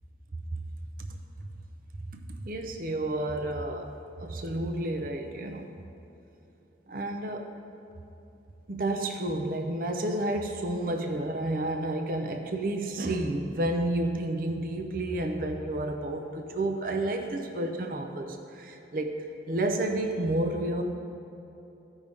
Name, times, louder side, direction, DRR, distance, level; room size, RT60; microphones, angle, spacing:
voice 1, 2.4-3.9 4.2-5.7 6.9-7.5 8.7-19.2 19.5-20.8, right 1 dB, 50° right, 4 dB, 0.6 m, -30 dB
14.5 x 5.3 x 3.5 m, 2.9 s
head